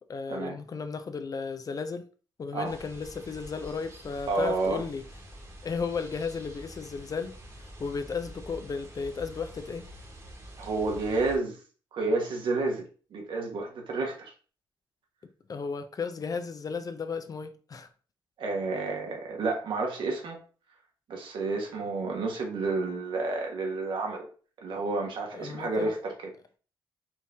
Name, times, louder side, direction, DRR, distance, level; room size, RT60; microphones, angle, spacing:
voice 1, 0.1-2.1 2.4-5.0 5.6-9.8 15.5-17.9 25.3-25.9, left 5 dB, 45° left, 0.6 m, -34 dB
sound 1, 2.6-11.4, equal, 35° right, 1.5 m, -47 dB
voice 2, 4.3-4.8 10.6-11.6 11.9-12.8 13.1-14.3 18.4-20.4 21.1-24.3 24.6-26.1, right 3 dB, 70° right, 1.3 m, -30 dB
4.5 x 2.7 x 3.5 m
cardioid pair, 65°, 9 cm